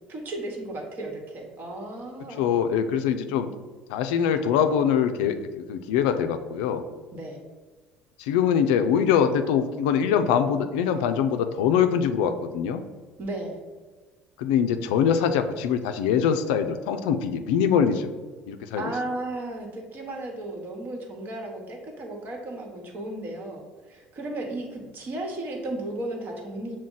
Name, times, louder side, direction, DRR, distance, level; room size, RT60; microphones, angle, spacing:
voice 1, 0.1-2.5 7.1-7.4 13.2-13.6 18.8-26.8, right 2 dB, 50° right, 1 dB, 1.1 m, -34 dB
voice 2, 2.4-3.5 3.9-6.8 8.2-12.8 14.4-18.2 18.5-18.9, left 8 dB, 80° left, 8 dB, 0.3 m, -23 dB
6.0 x 2.1 x 3.8 m, 1.4 s
hypercardioid pair, 70°, 4 cm